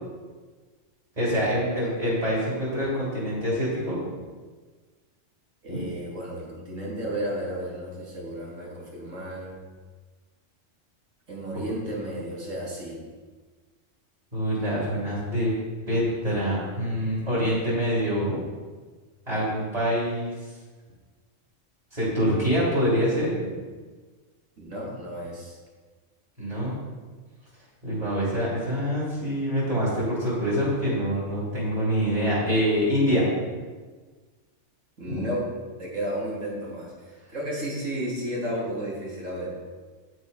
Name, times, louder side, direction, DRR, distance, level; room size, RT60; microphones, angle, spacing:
voice 1, 1.1-4.1 5.7-5.8 14.3-15.5 15.9-18.3 19.3-20.3 21.9-23.5 26.4-26.7 27.8-33.5 35.1-35.3, equal, 30° right, -8 dB, 3.2 m, -25 dB
voice 2, 5.6-9.5 11.3-13.0 24.6-25.6 35.0-35.4 35.8-39.5, right 1 dB, 80° right, -4 dB, 2.9 m, -33 dB
9.4 x 6.3 x 5.4 m, 1.4 s
omnidirectional pair, 1.3 m